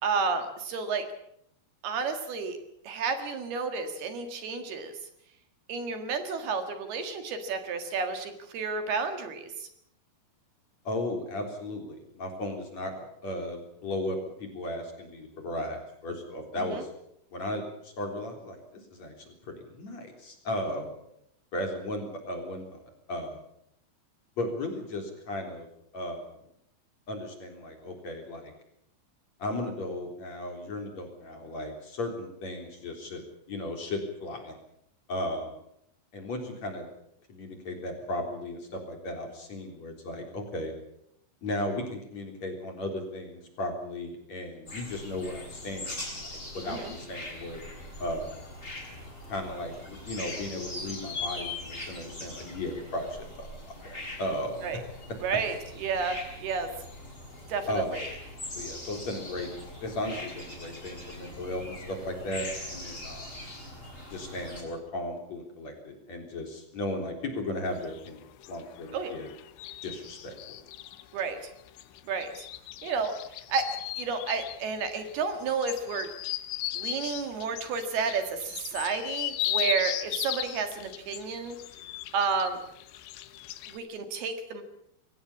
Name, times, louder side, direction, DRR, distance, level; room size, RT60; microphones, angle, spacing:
voice 1, 0.0-1.1 1.8-2.6 2.8-4.9 5.7-9.7 16.6-16.8 46.6-46.9 54.6-54.8 55.2-56.7 57.5-58.1 68.9-69.1 71.1-71.4 72.1-72.5 72.8-73.1 73.5-73.7 74.0-76.1 76.7-81.6 82.1-82.6 83.7-84.6, right 5 dB, 65° right, 7 dB, 3.5 m, -31 dB
voice 2, 10.8-12.9 13.2-16.9 17.3-20.9 21.5-23.4 24.4-25.7 25.9-26.3 27.1-28.5 29.4-33.2 33.5-34.5 35.1-35.5 36.1-36.9 37.3-40.7 41.4-47.7 48.0-48.4 49.3-53.5 53.8-54.6 57.7-57.9 58.5-59.5 59.8-63.3 64.1-69.3 69.8-70.6, left 1 dB, 40° left, 4 dB, 4.5 m, -35 dB
sound 1, 44.7-64.6, left 2 dB, 15° left, 6.8 m, -41 dB
sound 2, 67.7-83.8, left 13 dB, 80° left, 3.5 m, -37 dB
23.0 x 18.0 x 8.5 m, 0.74 s
omnidirectional pair, 5.3 m